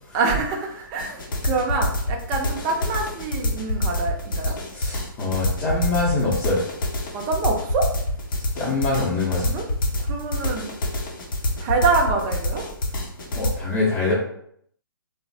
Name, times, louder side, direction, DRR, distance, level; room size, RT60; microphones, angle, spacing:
voice 1, 0.1-4.6 7.1-7.9 9.5-9.6 10.0-10.7 11.6-12.6, right 4 dB, 25° right, 1 dB, 0.4 m, -25 dB
sound 1, 1.0-13.5, left 1 dB, 65° left, 0.7 m, -26 dB
voice 2, 4.7-6.6 8.6-9.5 13.3-14.1, left 3 dB, 25° left, -8 dB, 0.7 m, -24 dB
3.0 x 2.0 x 2.6 m, 0.67 s
hypercardioid pair, 145°, 12 cm